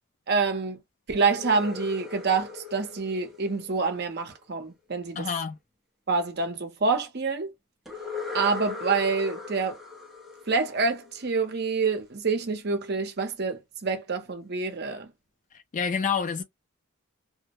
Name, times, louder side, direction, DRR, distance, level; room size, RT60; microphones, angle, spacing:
voice 1, 0.3-0.8 1.1-5.3 6.1-7.5 8.3-9.8 10.5-15.1, right 4 dB, 50° right, 0.7 m, -27 dB
sound 1, 1.2-4.2 7.9-11.6, left 5 dB, ahead, 0.6 m, -39 dB
voice 2, 5.2-5.6 15.5-16.4, left 6 dB, 35° left, 0.3 m, -28 dB
2.2 x 2.1 x 2.8 m
head